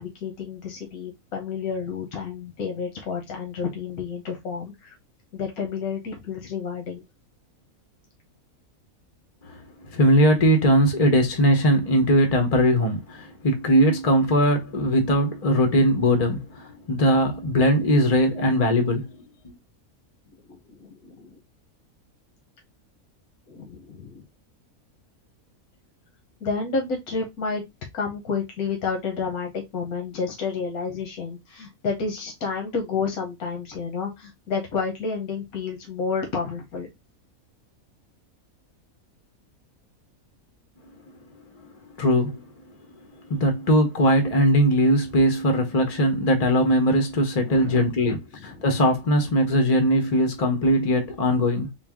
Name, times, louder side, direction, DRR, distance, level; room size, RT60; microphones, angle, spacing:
voice 1, 0.0-4.9 5.3-7.0 20.5-21.4 23.5-24.2 26.4-27.6 27.9-36.9 47.4-48.1 48.4-48.7, left 5 dB, 85° left, 1.5 m, -30 dB
voice 2, 9.9-19.1 19.4-19.5 41.6-41.7 42.0-42.3 43.3-51.7, equal, 35° left, 0.6 m, -20 dB
3.9 x 2.3 x 3.5 m
omnidirectional pair, 1.5 m